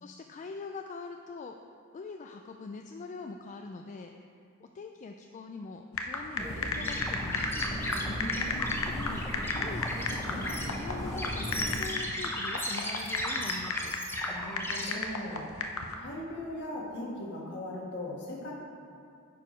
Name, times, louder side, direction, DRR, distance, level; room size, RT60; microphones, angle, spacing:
voice 1, 0.0-4.1 4.6-7.7 8.7-9.2 9.5-14.0, left 4 dB, 35° left, 4 dB, 0.3 m, -43 dB
sound 1, 5.9-15.9, left 4 dB, 75° left, 0.7 m, -35 dB
sound 2, 6.4-11.8, equal, 15° right, 1.2 m, -37 dB
sound 3, 6.7-14.9, left 1 dB, 10° left, 0.9 m, -36 dB
voice 2, 7.9-8.8 14.3-15.5 15.9-18.5, left 1 dB, 55° left, -3 dB, 1.6 m, -39 dB
9.2 x 4.8 x 5.0 m, 2.4 s
head